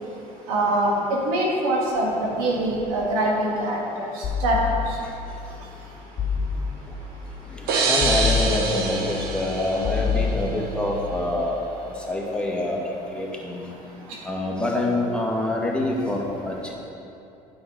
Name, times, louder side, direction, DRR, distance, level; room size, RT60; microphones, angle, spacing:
voice 1, 0.5-4.6, right 1 dB, 80° right, -3 dB, 1.9 m, -24 dB
sound 1, 4.2-5.3 6.2-7.1 8.0-9.1 9.8-10.9, left 6 dB, 50° left, 1.3 m, -27 dB
voice 2, 7.5-11.6 11.8-12.8 13.1-13.6 14.2-16.7, left 1 dB, 5° left, -3 dB, 2.0 m, -26 dB
sound 2, 7.7-10.4, right 4 dB, 60° right, 1.4 m, -26 dB
9.3 x 6.4 x 5.1 m, 2.8 s
hypercardioid pair, 65°, 18 cm